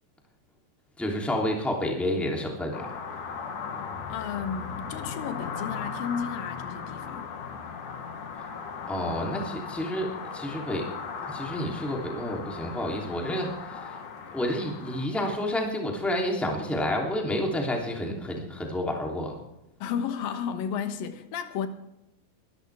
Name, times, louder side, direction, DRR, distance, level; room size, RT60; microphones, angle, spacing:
voice 1, 1.0-2.9 8.9-10.8 11.3-14.0 14.3-19.3, left 1 dB, ahead, 2.5 m, -30 dB
sound 1, 2.7-15.1, left 6 dB, 65° left, 3.2 m, -37 dB
voice 2, 4.1-7.3 19.8-21.7, left 7 dB, 85° left, 2.9 m, -33 dB
23.0 x 13.0 x 3.5 m
omnidirectional pair, 3.9 m